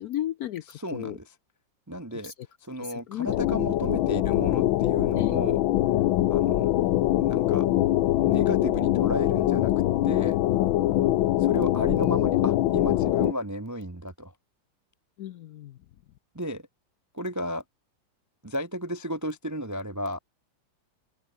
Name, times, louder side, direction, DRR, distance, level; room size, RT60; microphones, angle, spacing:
voice 1, 0.0-0.6 0.9-1.1 2.2-2.3 3.1-3.3 5.2-5.3 10.9-11.1 15.2-15.7, left 12 dB, 70° left, 0.9 m, -33 dB
voice 2, 0.7-1.3 1.9-2.3 2.6-5.6 6.3-6.7 7.2-7.7 8.2-9.7 10.0-10.4 11.4-14.3 16.3-16.6 17.1-17.6 18.4-20.2, equal, 20° right, 0.5 m, -33 dB
sound 1, 3.3-13.3, left 14 dB, 90° left, 1.5 m, -23 dB
open air
omnidirectional pair, 2.1 m